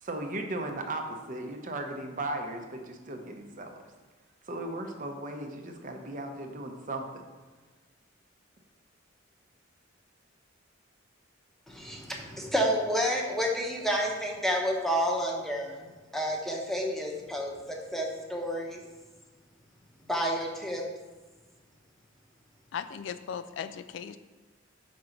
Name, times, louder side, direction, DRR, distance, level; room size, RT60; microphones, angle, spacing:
voice 1, 0.0-3.8 4.4-7.2, right 2 dB, 40° right, 4 dB, 0.7 m, -36 dB
voice 2, 11.7-18.8 20.1-20.8, equal, ahead, -1 dB, 0.8 m, -30 dB
voice 3, 22.7-24.2, left 8 dB, 65° left, 11 dB, 0.3 m, -37 dB
5.3 x 3.8 x 5.9 m, 1.3 s
head